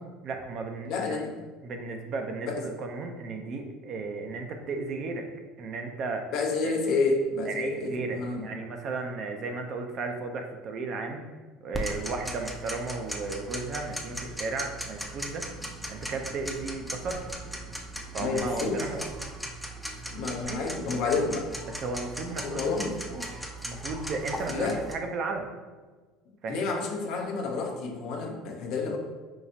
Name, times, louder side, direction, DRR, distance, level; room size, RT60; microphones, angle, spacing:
voice 1, 0.2-1.3 1.6-5.3 5.6-6.2 6.6-6.7 7.5-11.2 11.6-15.5 15.9-17.2 18.1-19.1 20.5-20.7 21.0-21.1 21.8-22.8 23.1-25.5 26.4-26.7, right 3 dB, 50° right, 4 dB, 0.5 m, -34 dB
voice 2, 0.8-1.3 2.4-2.6 6.3-8.5 18.2-18.9 20.1-21.5 22.4-23.0 24.5-24.8 26.5-29.0, left 3 dB, 65° left, 2 dB, 0.6 m, -29 dB
Tick-tock, 11.7-24.9, right 1 dB, ahead, 0.5 m, -38 dB
4.6 x 2.4 x 2.7 m, 1.3 s
supercardioid pair, 90°, 0 cm